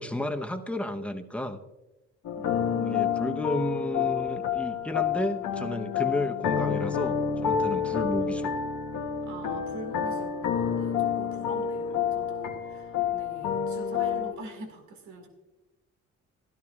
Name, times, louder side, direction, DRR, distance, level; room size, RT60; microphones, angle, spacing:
voice 1, 0.0-1.6 2.8-8.6, left 1 dB, 5° left, 5 dB, 0.9 m, -32 dB
sound 1, 2.2-14.3, left 7 dB, 80° left, 1.5 m, -29 dB
voice 2, 2.4-3.0 9.2-15.3, right 2 dB, 75° right, 5 dB, 2.0 m, -44 dB
16.0 x 12.0 x 2.4 m, 1.0 s
cardioid pair, 90°, 30 cm